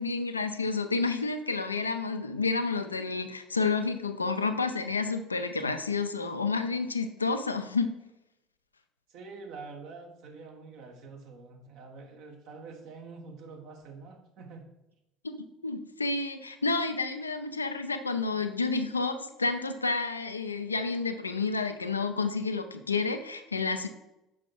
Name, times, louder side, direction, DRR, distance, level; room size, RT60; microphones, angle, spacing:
voice 1, 0.0-7.9 15.2-15.4 15.6-23.9, left 4 dB, 80° left, 8 dB, 0.4 m, -30 dB
voice 2, 9.1-14.7, right 4 dB, 55° right, 2 dB, 1.1 m, -46 dB
6.3 x 5.7 x 3.8 m, 0.92 s
figure-of-eight pair, 60°, 0 cm